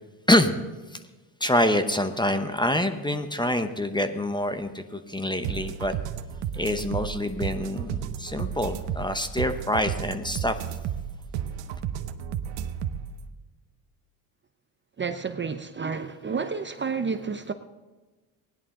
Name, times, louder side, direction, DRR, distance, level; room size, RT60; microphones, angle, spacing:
voice 1, 1.4-5.9 6.5-10.6, left 1 dB, 10° left, 0.9 m, -26 dB
sound 1, 5.4-13.2, right 9 dB, 60° right, 1.0 m, -32 dB
voice 2, 15.0-17.5, right 5 dB, 25° right, 0.7 m, -30 dB
17.0 x 11.0 x 3.8 m
supercardioid pair, 80°, 49 cm